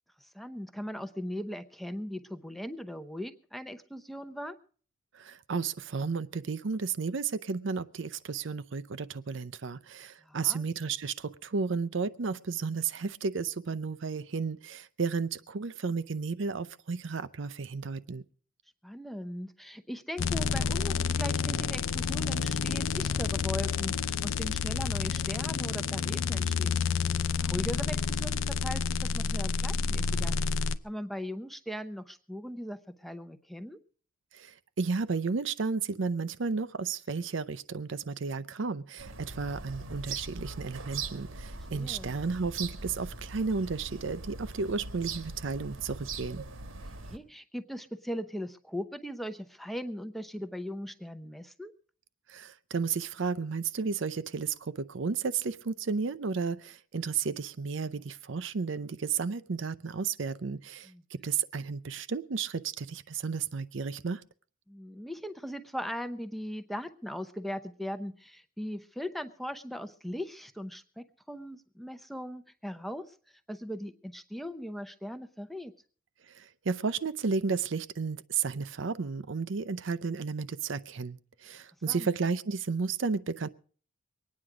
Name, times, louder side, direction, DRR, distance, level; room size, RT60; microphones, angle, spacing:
voice 1, 0.3-4.6 10.2-10.6 18.8-26.8 27.4-30.3 30.8-33.8 41.7-42.1 47.0-51.7 60.8-61.0 64.7-73.1 73.5-75.7 81.9-82.1, equal, ahead, 0.7 m, -39 dB
voice 2, 5.1-18.2 34.3-46.5 52.3-64.2 76.3-83.5, right 5 dB, 65° right, 0.6 m, -33 dB
sound 1, 20.2-30.8, left 6 dB, 75° left, 0.6 m, -29 dB
sound 2, 39.0-47.2, right 4 dB, 85° right, 1.4 m, -41 dB
23.5 x 9.6 x 4.9 m
head